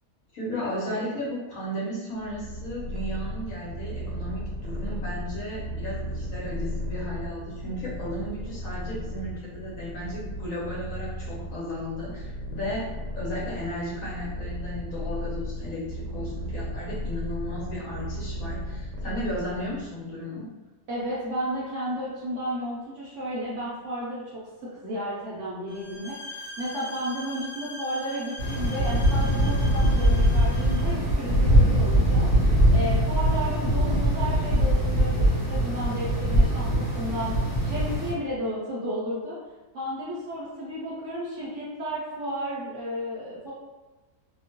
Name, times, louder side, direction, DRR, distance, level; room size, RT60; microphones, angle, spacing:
voice 1, 0.3-12.9 13.2-20.5, equal, 60° left, -6 dB, 1.1 m, -34 dB
Purr, 2.2-19.9, equal, 90° right, 1.2 m, -35 dB
voice 2, 20.9-39.4 39.7-43.5, equal, 60° right, -7 dB, 0.8 m, -33 dB
sound 1, 25.7-30.9, left 1 dB, 85° left, 0.5 m, -41 dB
sound 2, 28.4-38.1, equal, 35° left, 1.1 m, -22 dB
2.8 x 2.2 x 2.8 m, 1.2 s
omnidirectional pair, 1.7 m